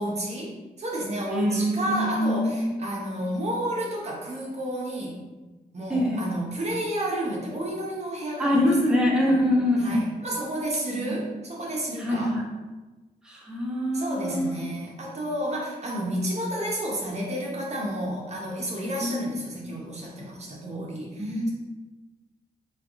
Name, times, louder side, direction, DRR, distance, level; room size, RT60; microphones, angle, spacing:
voice 1, 0.0-5.2 5.7-9.0 9.8-12.4 13.9-21.5, right 1 dB, 45° right, -3 dB, 0.8 m, -31 dB
voice 2, 1.3-2.8 5.9-6.2 8.4-10.0 11.0-11.2 12.0-12.4 13.2-14.6 19.0-19.3 21.2-21.5, left 1 dB, 5° right, -4 dB, 0.7 m, -24 dB
3.3 x 2.3 x 3.6 m, 1.2 s
cardioid pair, 90°, 16 cm